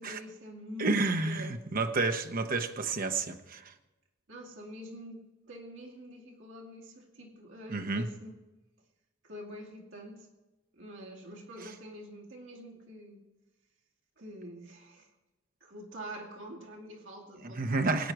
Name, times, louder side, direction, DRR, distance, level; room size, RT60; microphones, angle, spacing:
voice 1, 0.0-1.6 4.3-8.4 9.2-10.3 10.7-13.2 14.2-15.1 15.6-17.8, equal, 65° right, -1 dB, 2.3 m, -46 dB
voice 2, 0.8-3.7 7.7-8.1 17.4-18.1, right 3 dB, 45° right, 7 dB, 0.9 m, -30 dB
21.5 x 9.2 x 4.7 m, 1.1 s
head